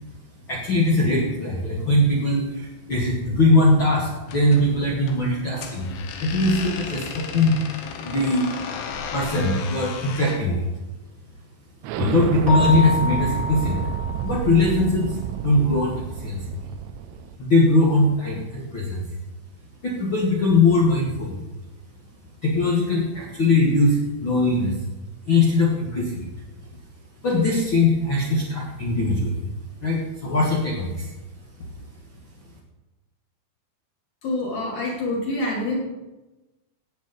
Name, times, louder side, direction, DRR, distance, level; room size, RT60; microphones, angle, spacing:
voice 1, 0.5-5.9 6.2-7.6 8.0-8.5 9.1-10.6 12.0-13.8 14.2-16.5 17.4-19.0 19.8-21.4 22.4-24.8 25.3-26.3 27.2-29.4 29.8-31.1, left 2 dB, 65° left, -3 dB, 1.2 m, -21 dB
sound 1, 4.2-10.4, left 6 dB, 80° left, 3.2 m, -35 dB
Explosion, 11.8-17.4, right 10 dB, 85° right, 2.6 m, -30 dB
Keyboard (musical), 12.5-14.9, left 2 dB, 40° right, 1.3 m, -28 dB
voice 2, 34.2-35.8, left 2 dB, 50° left, -4 dB, 4.1 m, -26 dB
16.0 x 8.3 x 4.0 m, 1.1 s
omnidirectional pair, 4.8 m